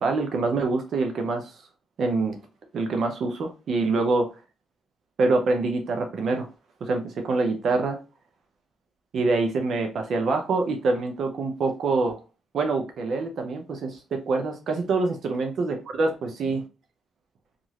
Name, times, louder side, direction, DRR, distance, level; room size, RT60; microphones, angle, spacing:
voice 1, 0.0-1.5 2.0-2.4 2.7-4.3 5.2-6.5 6.8-8.0 9.1-12.2 12.5-16.6, right 3 dB, 60° right, 4 dB, 0.6 m, -25 dB
2.9 x 2.5 x 2.8 m, 0.31 s
cardioid pair, 90°, 0 cm